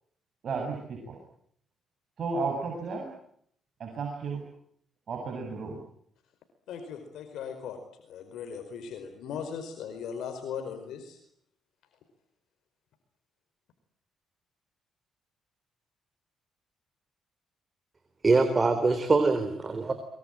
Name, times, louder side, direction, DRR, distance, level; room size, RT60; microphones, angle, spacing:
voice 1, 0.4-1.2 2.2-3.1 3.8-4.4 5.1-5.8, right 4 dB, 55° right, 1 dB, 7.8 m, -33 dB
voice 2, 6.7-11.2, left 7 dB, 80° left, 6 dB, 4.8 m, -38 dB
voice 3, 18.2-19.9, right 3 dB, 30° right, 8 dB, 3.9 m, -23 dB
24.0 x 23.5 x 9.0 m, 0.67 s
cardioid pair, 90°, 0 cm